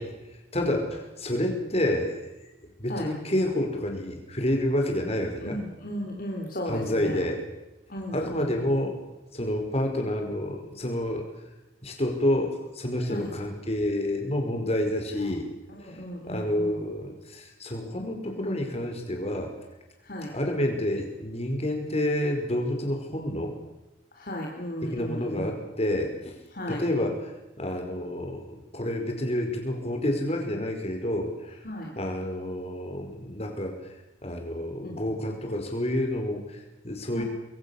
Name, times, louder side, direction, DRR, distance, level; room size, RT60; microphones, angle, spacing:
voice 1, 0.5-2.2 2.8-5.6 6.7-7.4 8.1-9.0 9.3-11.3 11.8-15.5 15.8-16.0 16.3-19.5 20.3-23.5 24.8-26.4 26.7-27.3 27.6-31.6 32.0-33.8 34.2-37.2, left 1 dB, 35° left, 3 dB, 5.2 m, -29 dB
voice 2, 5.4-7.2 7.9-8.6 13.1-13.3 15.2-15.3 15.7-16.8 20.0-20.3 24.1-25.5 26.5-26.8 31.6-31.9 34.8-35.0 37.1-37.2, equal, 50° left, 0 dB, 3.4 m, -35 dB
25.5 x 22.5 x 7.3 m, 1.0 s
head